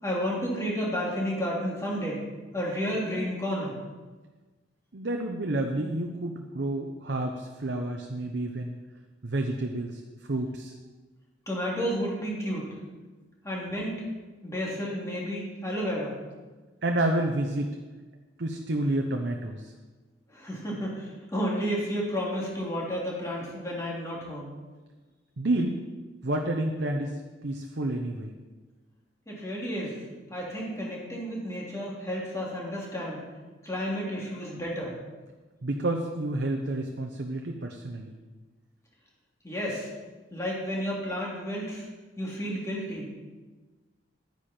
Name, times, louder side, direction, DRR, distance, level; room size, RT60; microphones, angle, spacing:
voice 1, 0.0-2.3 2.5-3.8 11.5-12.7 13.4-14.0 14.4-16.2 20.3-24.5 29.3-30.0 30.3-33.2 33.6-35.0 39.4-39.9 40.3-41.9 42.2-43.2, equal, 15° left, -4 dB, 2.8 m, -31 dB
voice 2, 4.9-8.7 9.2-10.0 10.3-10.7 16.8-17.8 18.4-19.7 25.4-25.8 26.2-28.3 35.6-38.1, right 1 dB, 60° right, 2 dB, 0.8 m, -29 dB
11.0 x 9.9 x 4.4 m, 1.3 s
head